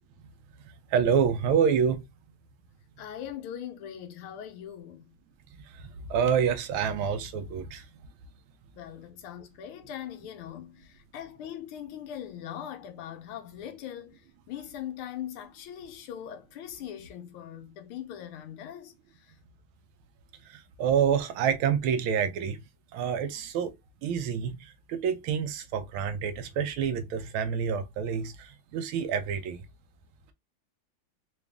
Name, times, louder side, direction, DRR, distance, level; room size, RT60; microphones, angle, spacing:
voice 1, 0.9-2.0 5.7-7.9 20.5-22.6 22.9-23.7 24.0-29.6, right 7 dB, 80° right, 1.5 m, -27 dB
voice 2, 3.0-5.1 8.7-14.2 14.5-19.3, left 10 dB, 85° left, 1.6 m, -41 dB
4.0 x 2.5 x 3.4 m
omnidirectional pair, 2.3 m